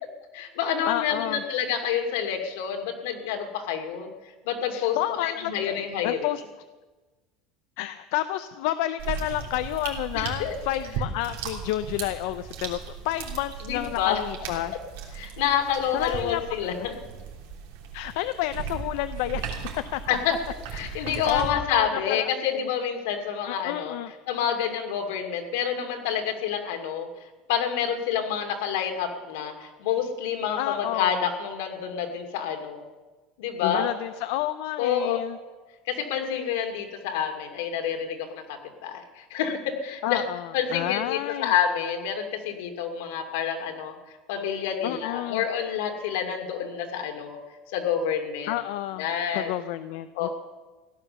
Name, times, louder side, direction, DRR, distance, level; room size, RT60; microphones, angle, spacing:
voice 1, 0.3-4.1 4.4-6.3 10.1-10.5 13.6-14.2 15.1-16.9 20.1-20.4 20.7-23.9 24.3-27.1 27.5-32.8 33.4-33.9 34.8-35.2 35.9-40.2 40.5-47.4 47.7-48.6 49.0-49.5 50.1-50.3, left 8 dB, 85° left, 4 dB, 2.5 m, -28 dB
voice 2, 0.9-1.4 4.7-5.8 6.0-6.4 7.8-14.7 15.9-16.4 16.8-16.9 17.9-19.4 19.9-20.0 20.8-22.3 23.5-24.1 30.6-31.3 33.6-35.4 40.0-41.5 44.8-45.4 48.5-50.3, left 14 dB, 70° left, 11 dB, 0.5 m, -30 dB
sound 1, 9.0-21.5, right 7 dB, 80° right, 3.2 m, -37 dB
16.0 x 11.0 x 6.8 m, 1.2 s
cardioid pair, 170°, 0 cm